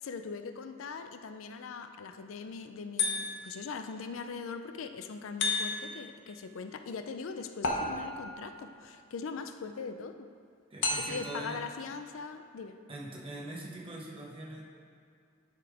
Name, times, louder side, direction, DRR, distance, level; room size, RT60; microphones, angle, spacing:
voice 1, 0.0-10.3 11.0-12.8, left 5 dB, 90° left, 8 dB, 0.5 m, -41 dB
sound 1, 3.0-3.6 5.4-6.0 7.6-8.4 10.8-11.4, left 3 dB, 65° left, 1.0 m, -32 dB
voice 2, 10.7-11.6 12.9-14.6, right 1 dB, 30° right, -3 dB, 1.0 m, -42 dB
9.5 x 3.7 x 4.9 m, 2.3 s
head